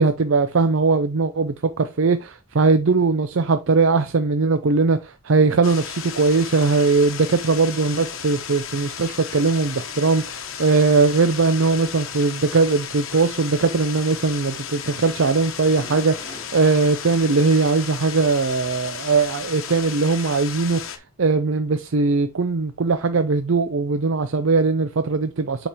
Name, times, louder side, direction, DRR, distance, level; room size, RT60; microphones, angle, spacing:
voice 1, 0.0-25.7, right 4 dB, 60° right, 0.5 m, -20 dB
sound 1, 5.6-21.0, left 8 dB, 65° left, 1.1 m, -34 dB
sound 2, 15.6-17.8 18.2-18.3 18.7-18.8 22.6-22.7, left 2 dB, 20° left, 1.5 m, -44 dB
8.5 x 5.2 x 2.9 m
head